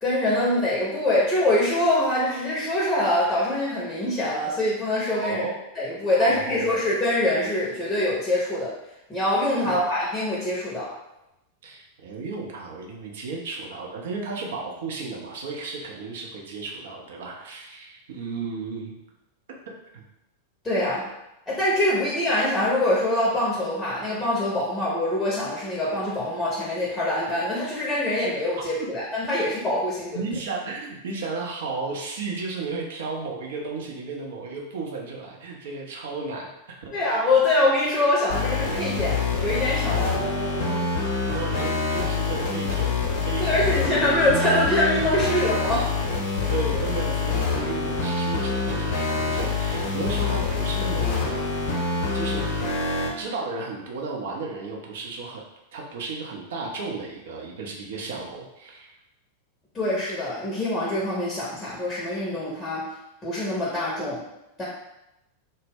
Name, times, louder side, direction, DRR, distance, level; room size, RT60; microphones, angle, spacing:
voice 1, 0.0-5.4 5.7-8.7 9.1-10.9 20.6-21.0 21.5-30.2 36.9-40.1 43.4-45.9 59.7-62.9 63.2-64.2 64.6-64.7, left 1 dB, 15° left, -6 dB, 0.7 m, -24 dB
voice 2, 5.1-5.5 6.2-6.8 9.6-9.8 11.6-19.0 19.9-20.0 30.1-37.0 39.9-42.9 43.2-44.0 46.5-51.5 52.1-52.6 53.2-55.4 55.7-58.9, right 4 dB, 60° right, -1 dB, 0.5 m, -34 dB
sound 1, 38.3-53.1, left 4 dB, 50° left, 0.6 m, -26 dB
2.1 x 2.0 x 3.4 m, 0.90 s
figure-of-eight pair, 90°, 0 cm